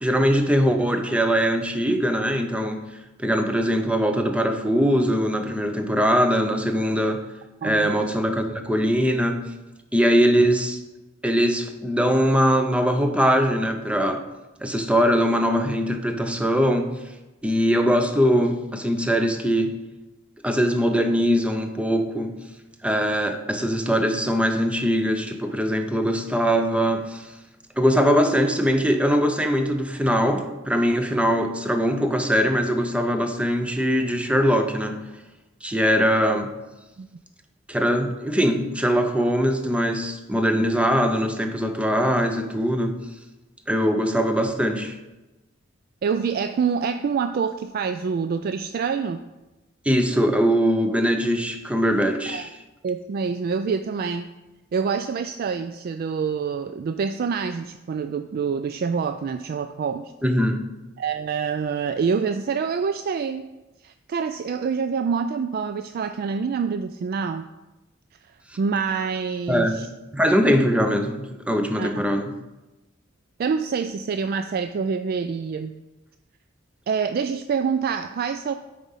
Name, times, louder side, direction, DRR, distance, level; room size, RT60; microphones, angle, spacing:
voice 1, 0.0-2.8 3.2-7.2 7.6-9.4 9.9-10.8 11.2-14.2 14.6-16.9 17.4-19.7 20.4-22.3 22.8-27.3 27.8-35.0 35.6-36.5 37.7-43.0 43.7-45.0 49.8-52.5 60.2-60.7 69.5-69.9 70.1-72.3, equal, 5° right, 6 dB, 0.7 m, -21 dB
voice 2, 7.6-7.9 37.0-37.1 46.0-49.2 52.3-52.5 52.8-54.3 54.7-60.1 61.0-63.5 63.8-67.5 68.6-69.9 71.8-72.0 73.4-75.7 76.9-78.5, right 6 dB, 50° right, 9 dB, 0.3 m, -26 dB
9.1 x 4.9 x 5.6 m, 1.1 s
head